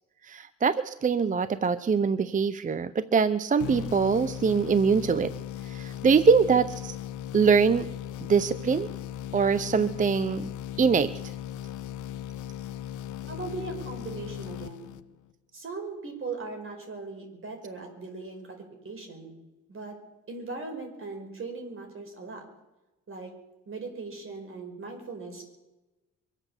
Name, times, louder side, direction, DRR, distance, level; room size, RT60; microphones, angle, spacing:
voice 1, 0.3-5.3 5.7-7.0 7.3-7.9 8.3-8.9 9.3-10.5 10.8-11.1, right 5 dB, 25° right, 14 dB, 0.6 m, -23 dB
sound 1, 3.6-15.3, left 11 dB, 80° left, 0.7 m, -38 dB
voice 2, 13.2-14.9 15.5-18.6 18.8-19.4 19.7-20.0 20.3-22.4 23.1-23.3 23.7-25.4, right 3 dB, 45° right, 3 dB, 5.0 m, -39 dB
23.5 x 8.3 x 7.2 m, 1.0 s
cardioid pair, 90°, 30 cm